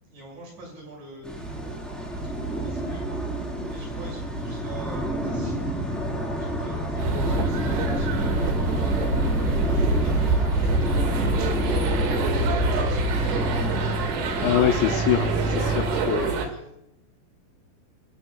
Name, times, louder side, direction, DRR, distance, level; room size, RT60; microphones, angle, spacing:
voice 1, 0.1-1.8 2.2-3.1 3.7-5.8 6.4-13.7 15.0-15.1 16.4-16.8, right 2 dB, 45° right, -1 dB, 7.9 m, -45 dB
sound 1, 1.2-16.3, right 1 dB, ahead, 3.7 m, -28 dB
sound 2, 7.0-16.5, right 3 dB, 75° right, 4.2 m, -26 dB
voice 2, 14.4-16.3, left 12 dB, 80° left, 7 dB, 2.9 m, -24 dB
28.0 x 15.5 x 2.4 m, 0.80 s
omnidirectional pair, 5.1 m